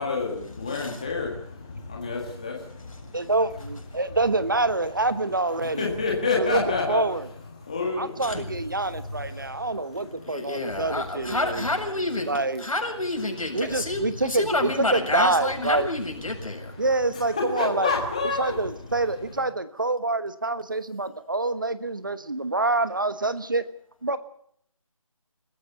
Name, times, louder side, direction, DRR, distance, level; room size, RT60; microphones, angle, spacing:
voice 1, 0.0-3.1 5.8-7.0 7.6-8.1 9.3-9.7 17.6-18.5, left 4 dB, 10° left, -1 dB, 1.8 m, -28 dB
voice 2, 0.7-1.0 8.2-8.4 10.2-16.7, left 2 dB, 70° left, 2 dB, 7.4 m, -29 dB
voice 3, 3.1-5.9 6.3-7.3 8.0-11.6 12.2-12.6 13.5-15.9 16.8-17.9 18.2-23.6 24.0-24.2, right 2 dB, 35° right, 13 dB, 1.2 m, -26 dB
25.5 x 15.0 x 8.3 m, 0.67 s
figure-of-eight pair, 180°, 18 cm